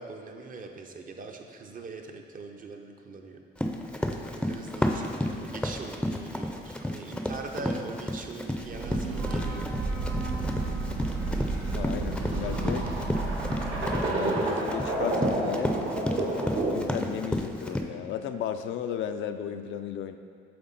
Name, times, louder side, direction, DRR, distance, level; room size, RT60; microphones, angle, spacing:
voice 1, 0.0-3.4 4.3-9.7, right 4 dB, 45° right, 3 dB, 0.6 m, -41 dB
Run, 3.6-17.8, left 1 dB, 5° left, 0.5 m, -32 dB
Breathing / Train, 8.6-14.1, right 3 dB, 85° right, 0.9 m, -33 dB
sound 1, 9.9-17.0, right 2 dB, 65° right, 1.1 m, -31 dB
voice 2, 11.7-12.9 14.0-15.8 16.7-20.2, left 9 dB, 75° left, 8 dB, 0.4 m, -35 dB
7.8 x 3.6 x 4.0 m, 2.3 s
cardioid pair, 90°, 20 cm